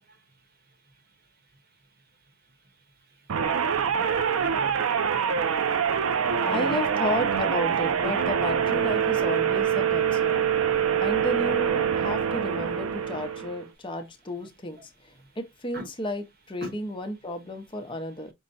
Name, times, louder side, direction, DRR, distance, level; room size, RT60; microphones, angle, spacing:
sound 1, 3.3-13.7, right 7 dB, 85° right, 0.5 m, -25 dB
voice 1, 3.9-5.1 6.0-6.8 14.8-14.9 15.7-15.9 16.6-16.7, right 2 dB, 50° right, 1.0 m, -39 dB
voice 2, 6.4-10.5 11.0-14.8 15.4-18.3, left 1 dB, 25° left, 0.6 m, -32 dB
5.3 x 2.1 x 4.0 m
head